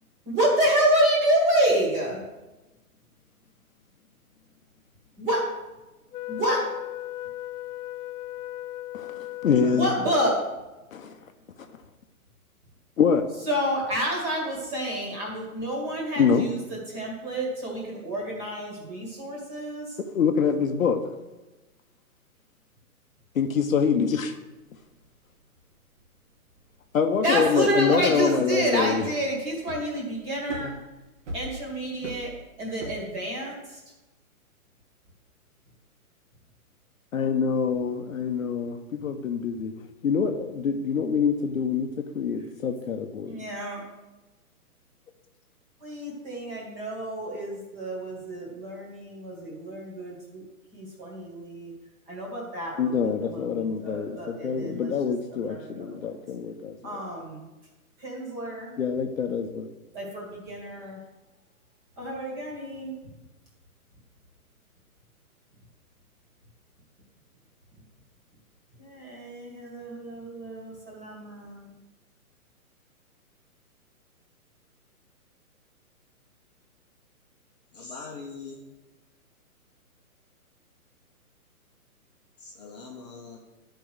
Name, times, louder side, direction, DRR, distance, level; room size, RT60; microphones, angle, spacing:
voice 1, 0.3-2.2 5.2-5.4 6.3-6.6 9.7-10.4 13.5-20.0 27.2-30.7 31.3-32.3 32.6-33.8 43.3-43.8 45.8-50.4 50.7-51.7 52.1-54.9 55.3-56.1 56.8-57.5 58.0-58.7 59.9-61.0 62.0-63.0 68.8-71.7, right 1 dB, 15° right, -2 dB, 1.7 m, -29 dB
Wind instrument woodwind instrument, 6.1-10.5, left 15 dB, 85° left, 0.6 m, -37 dB
voice 2, 8.9-9.9 10.9-11.2 13.0-13.3 16.2-16.5 20.1-21.0 23.3-24.4 26.9-29.0 30.6-30.7 37.1-39.7 40.0-43.4 52.8-57.0 58.8-59.7, left 6 dB, 60° left, 6 dB, 0.9 m, -25 dB
voice 3, 9.5-10.1 77.7-78.6 82.4-83.4, left 3 dB, 30° left, -2 dB, 1.0 m, -41 dB
sound 1, 24.8-26.9 27.2-27.3 27.5-33.2, right 2 dB, 50° right, 1.2 m, -40 dB
11.0 x 4.6 x 6.2 m, 1.1 s
hypercardioid pair, 165°, 45 cm